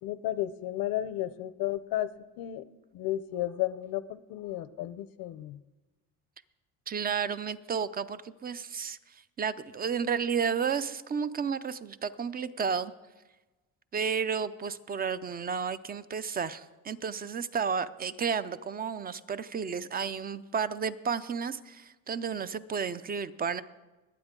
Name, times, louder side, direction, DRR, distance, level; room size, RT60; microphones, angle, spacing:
voice 1, 0.0-2.1 2.4-2.6 2.9-5.6, left 13 dB, 80° left, 15 dB, 0.7 m, -33 dB
voice 2, 6.9-12.9 13.9-23.6, right 6 dB, 25° right, 15 dB, 0.4 m, -32 dB
20.5 x 8.8 x 3.7 m, 1.2 s
cardioid pair, 125°, 34 cm